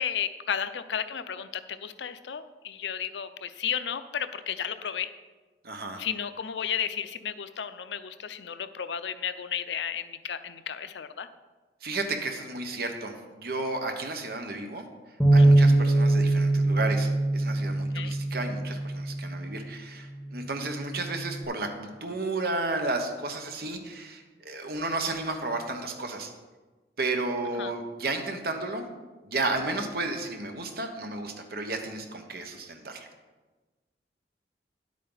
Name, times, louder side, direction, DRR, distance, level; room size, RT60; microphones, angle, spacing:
voice 1, 0.0-5.1 6.0-11.3 15.4-15.5 17.9-18.1 27.6-27.7, left 8 dB, 85° left, 12 dB, 0.5 m, -33 dB
voice 2, 5.6-6.0 11.8-14.8 15.3-26.3 27.0-28.8 29.2-33.1, right 2 dB, 55° right, 5 dB, 1.2 m, -33 dB
Bass guitar, 15.2-19.6 20.3-21.4, right 2 dB, ahead, 1.4 m, -23 dB
10.0 x 8.4 x 4.0 m, 1.3 s
head